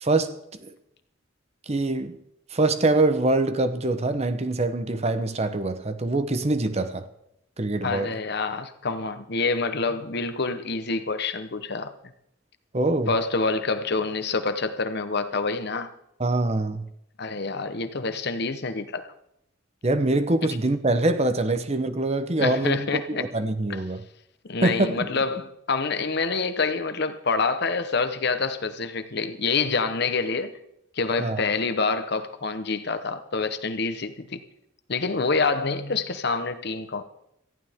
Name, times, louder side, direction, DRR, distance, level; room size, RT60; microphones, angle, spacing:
voice 1, 0.0-0.7 1.7-2.2 2.5-7.1 7.6-8.1 12.7-13.1 16.2-16.9 19.8-24.0 24.6-25.2 31.2-31.4, right 2 dB, 30° right, 0.8 m, -24 dB
voice 2, 7.8-11.9 13.1-15.9 17.2-19.1 22.4-23.2 24.4-30.5 31.0-34.4 34.9-37.0, left 4 dB, 55° left, 1.0 m, -27 dB
19.0 x 14.0 x 3.6 m
head